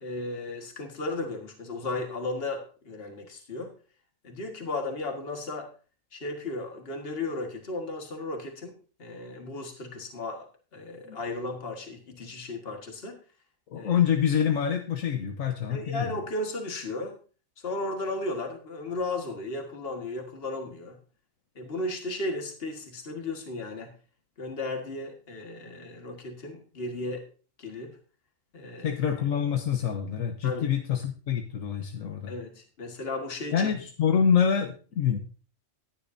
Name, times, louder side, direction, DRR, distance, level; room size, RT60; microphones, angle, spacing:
voice 1, 0.0-3.7 4.2-5.7 6.1-8.7 9.0-10.5 10.7-13.2 13.8-13.9 15.7-17.2 17.6-21.0 21.6-23.9 24.4-27.2 27.6-28.0 28.5-29.0 30.4-30.7 32.3-33.7, left 2 dB, 45° left, 3 dB, 1.9 m, -35 dB
voice 2, 13.7-16.2 28.8-32.3 33.5-35.2, left 8 dB, 85° left, 4 dB, 1.4 m, -26 dB
15.0 x 10.5 x 2.7 m, 0.37 s
omnidirectional pair, 1.4 m